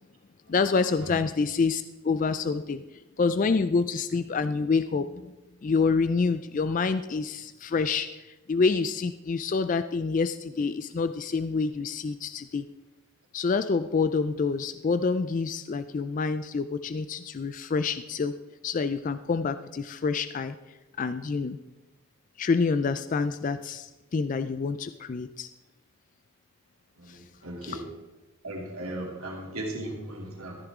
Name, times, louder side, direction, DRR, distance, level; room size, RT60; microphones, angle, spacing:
voice 1, 0.5-2.8 3.2-5.3 5.6-12.6 13.3-18.3 18.6-20.6 21.0-21.6 22.4-25.5 27.1-27.2 27.6-27.8, left 4 dB, 35° left, 11 dB, 0.3 m, -27 dB
voice 2, 27.0-27.9 28.4-30.6, right 1 dB, 85° right, -1 dB, 2.9 m, -37 dB
14.0 x 11.0 x 3.6 m, 1.1 s
head